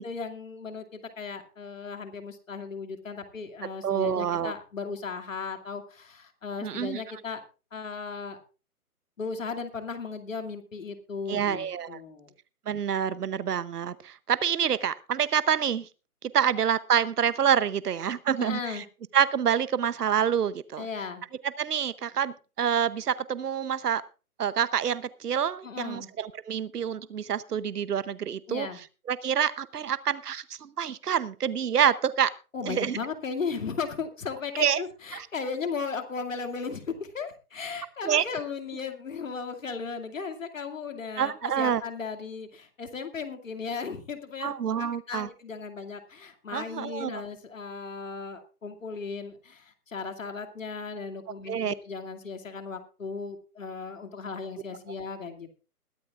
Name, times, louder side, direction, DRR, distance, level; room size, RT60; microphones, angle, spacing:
voice 1, 0.0-7.4 7.7-8.4 9.2-12.3 18.4-18.8 20.8-21.2 25.6-26.1 28.5-28.8 32.5-55.6, left 5 dB, 55° left, 7 dB, 2.4 m, -36 dB
voice 2, 3.8-4.5 6.6-7.0 11.3-12.0 12.7-15.9 16.2-18.8 19.1-20.9 21.6-24.0 24.4-28.7 29.1-32.3 32.6-33.0 34.6-34.8 35.1-35.3 38.0-38.2 41.2-41.8 44.4-45.3 46.5-47.2 51.5-51.7, right 8 dB, 85° right, 16 dB, 0.9 m, -27 dB
21.5 x 11.5 x 2.4 m, 0.33 s
hypercardioid pair, 175°, 45 cm